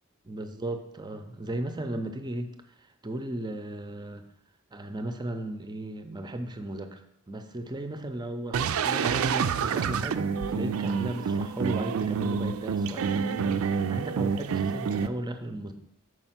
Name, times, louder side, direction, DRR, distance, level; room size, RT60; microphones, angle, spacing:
voice 1, 0.2-2.5 3.0-4.3 4.7-15.7, right 1 dB, 20° right, 7 dB, 0.5 m, -35 dB
sound 1, 8.5-15.1, right 6 dB, 80° right, 0.4 m, -28 dB
5.4 x 4.8 x 5.8 m, 0.78 s
head